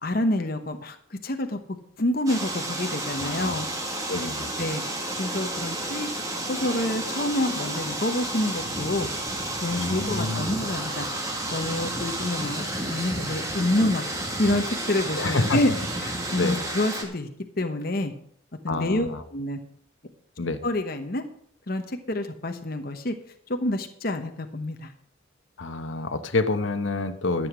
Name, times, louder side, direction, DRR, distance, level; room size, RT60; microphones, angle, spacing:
voice 1, 0.0-1.6 2.0-3.7 4.6-4.8 5.2-6.1 6.5-9.1 9.6-11.1 11.5-14.1 14.4-15.7 16.0-17.3 17.6-18.1 18.6-19.6 20.6-21.2 21.7-23.1 23.5-24.9, left 1 dB, 50° left, 6 dB, 1.0 m, -27 dB
sound 1, 2.3-17.0, right 1 dB, 15° right, 1.9 m, -31 dB
voice 2, 3.2-3.5 4.1-4.5 9.8-10.5 15.2-15.6 16.4-16.6 18.7-19.2 20.4-20.6 25.6-27.5, left 3 dB, 80° left, 8 dB, 1.0 m, -27 dB
13.0 x 7.9 x 6.1 m, 0.67 s
head